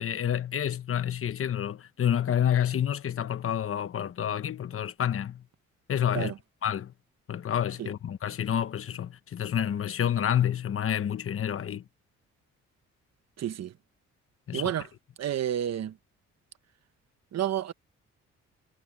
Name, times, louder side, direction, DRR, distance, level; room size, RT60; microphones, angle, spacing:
voice 1, 0.0-5.4 5.9-6.3 6.6-6.9 7.3-11.8 14.5-14.6, left 9 dB, 45° left, 1.2 m, -28 dB
voice 2, 13.4-13.7 14.5-14.9 15.2-16.0 17.3-17.7, right 11 dB, 60° right, 1.2 m, -30 dB
cardioid pair, 90°, 30 cm